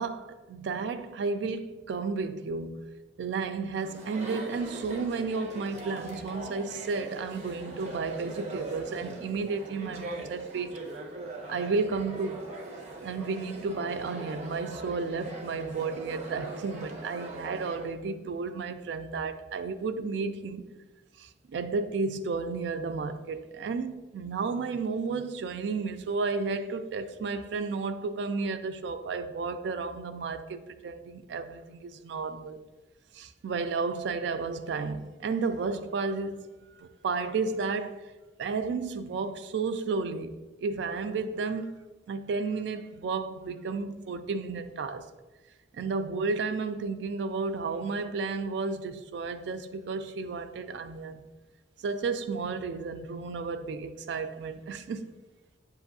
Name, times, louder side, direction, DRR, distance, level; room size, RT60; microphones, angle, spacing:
voice 1, 0.0-2.9 3.2-10.7 11.5-12.5 13.0-20.7 21.2-32.6 33.1-38.1 38.4-41.8 42.1-45.1 45.7-51.2 51.8-55.1, right 4 dB, 70° right, 0.3 m, -32 dB
Chatter, 3.8-17.9, right 2 dB, 40° right, 0.7 m, -41 dB
7.1 x 2.6 x 2.6 m
head